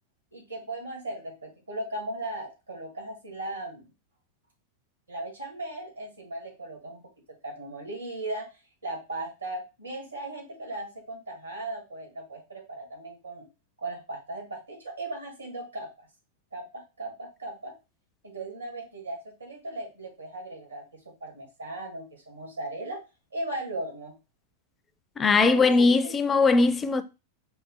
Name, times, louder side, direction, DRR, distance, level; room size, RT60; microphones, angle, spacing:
voice 1, 0.3-3.9 5.1-7.1 7.4-13.5 13.8-16.1 16.5-17.8 18.2-23.0 23.3-24.2 25.4-26.1, right 2 dB, 80° right, 1.8 m, -37 dB
voice 2, 25.2-27.0, left 4 dB, 20° left, 0.4 m, -20 dB
4.8 x 2.2 x 4.1 m
figure-of-eight pair, 90°, 0 cm